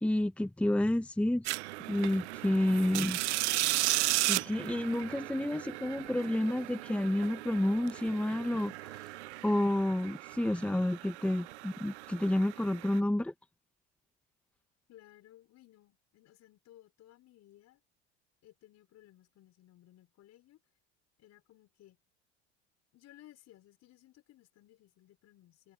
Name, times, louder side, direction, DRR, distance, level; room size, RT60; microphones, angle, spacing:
voice 1, 0.0-1.5 1.9-3.2 3.9-9.0 9.4-13.3, left 1 dB, 5° left, 1.1 m, -30 dB
sound 1, 1.4-13.0, right 19 dB, 90° right, 0.6 m, -36 dB
voice 2, 14.9-17.8 18.4-20.6 21.2-22.0 22.9-25.7, left 14 dB, 50° left, 5.7 m, -59 dB
supercardioid pair, 95°, 33 cm